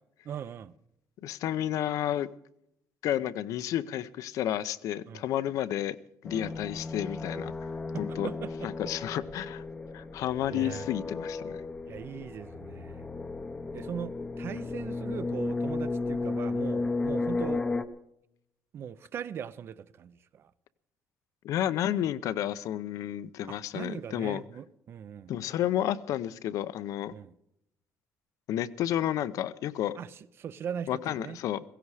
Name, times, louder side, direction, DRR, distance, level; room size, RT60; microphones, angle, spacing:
voice 1, 0.2-0.7 5.1-5.2 6.3-6.5 7.9-8.7 10.5-10.9 11.9-13.1 13.7-17.7 18.7-20.5 23.5-25.3 27.1-27.3 30.0-31.4, right 8 dB, 40° right, 0.5 m, -40 dB
voice 2, 1.2-2.3 3.0-6.0 6.2-7.5 8.0-8.3 8.6-9.6 9.9-11.6 21.4-24.4 25.3-27.1 28.5-30.0 30.9-31.6, left 11 dB, 65° left, 0.7 m, -31 dB
sound 1, 6.2-17.8, left 3 dB, 15° left, 0.6 m, -34 dB
16.0 x 16.0 x 4.9 m
cardioid pair, 175°, 6 cm